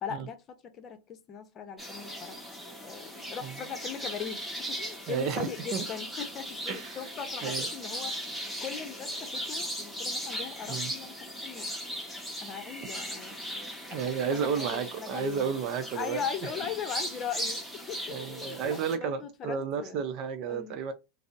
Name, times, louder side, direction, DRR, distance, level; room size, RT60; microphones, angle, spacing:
voice 1, 0.0-2.4 2.8-8.1 8.6-11.7 12.4-15.5 15.9-20.0 20.5-20.8, left 8 dB, 35° left, 0.7 m, -39 dB
sound 1, 1.8-19.0, equal, ahead, 1.2 m, -38 dB
voice 2, 5.1-5.8 6.7-7.0 7.4-7.7 10.7-10.9 12.8-12.9 13.9-16.2 18.1-20.9, right 6 dB, 50° right, 0.5 m, -32 dB
4.9 x 2.0 x 2.5 m
hypercardioid pair, 95°, 0 cm